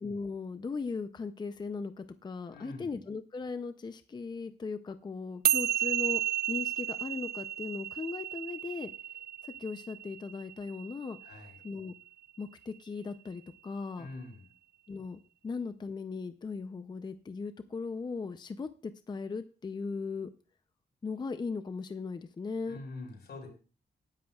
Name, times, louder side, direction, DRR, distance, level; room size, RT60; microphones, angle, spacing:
voice 1, 0.0-6.2 6.5-8.9 9.4-11.2 11.6-11.9 12.4-14.1 14.9-20.3 21.0-22.8, left 4 dB, 25° left, 10 dB, 0.5 m, -38 dB
voice 2, 2.5-2.9 11.2-11.6 14.0-14.5 22.7-23.5, left 2 dB, 80° left, 2 dB, 4.8 m, -44 dB
sound 1, 5.4-12.0, right 12 dB, 75° right, 0.4 m, -33 dB
19.0 x 10.5 x 2.3 m, 0.35 s
wide cardioid pair, 155°, 17 cm